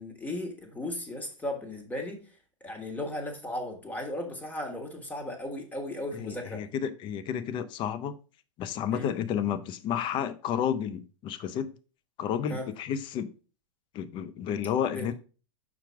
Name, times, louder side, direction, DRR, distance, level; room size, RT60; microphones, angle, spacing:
voice 1, 0.0-2.3 2.6-6.6 8.9-9.1 12.5-12.7 14.8-15.1, left 1 dB, 10° left, 1.6 m, -36 dB
voice 2, 6.1-8.1 8.6-11.7 12.2-13.3 13.9-15.1, left 8 dB, 30° left, 0.6 m, -31 dB
5.9 x 4.5 x 4.6 m
figure-of-eight pair, 100°, 17 cm